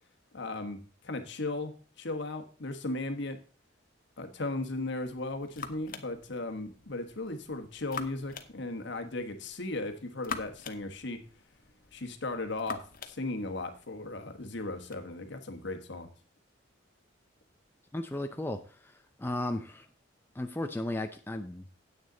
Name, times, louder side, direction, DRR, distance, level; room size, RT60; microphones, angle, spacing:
voice 1, 0.3-3.4 4.2-11.2 11.9-16.1, left 2 dB, 60° left, 7 dB, 1.3 m, -36 dB
sound 1, 4.9-15.0, left 5 dB, 45° left, 0.8 m, -46 dB
voice 2, 17.9-18.9 19.2-19.9 20.3-21.7, left 1 dB, 10° left, 5 dB, 0.5 m, -35 dB
9.4 x 8.3 x 3.9 m, 0.37 s
head